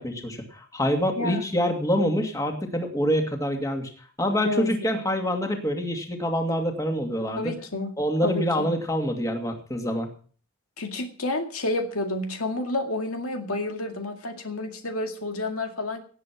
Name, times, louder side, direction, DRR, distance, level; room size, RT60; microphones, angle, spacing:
voice 1, 0.0-3.9 4.2-7.5 8.0-10.1, equal, 15° left, 3 dB, 2.5 m, -26 dB
voice 2, 7.4-7.9 8.2-8.7 10.8-16.0, left 2 dB, 85° left, 4 dB, 2.2 m, -30 dB
18.5 x 7.9 x 6.2 m, 0.43 s
head